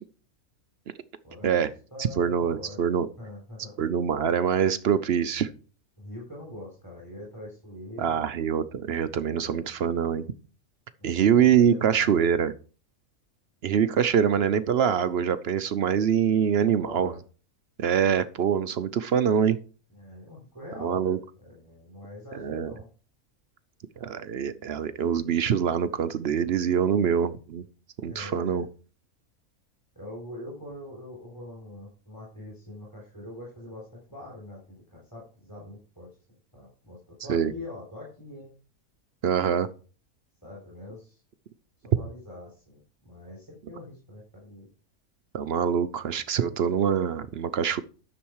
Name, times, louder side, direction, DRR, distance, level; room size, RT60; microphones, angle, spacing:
voice 1, 1.2-3.8 6.0-8.2 9.3-9.6 11.0-12.3 16.8-17.2 19.9-22.9 28.0-28.7 30.0-38.6 40.4-41.2 41.8-44.7, left 1 dB, 15° left, -4 dB, 3.7 m, -44 dB
voice 2, 2.0-3.1 3.8-5.5 8.0-10.3 11.0-12.5 13.6-17.1 17.8-19.6 20.8-21.2 22.4-22.7 24.0-27.6 28.0-28.7 37.3-37.5 39.2-39.7 45.3-47.8, right 8 dB, 55° right, 13 dB, 0.7 m, -24 dB
10.5 x 7.1 x 4.6 m, 0.38 s
omnidirectional pair, 1.5 m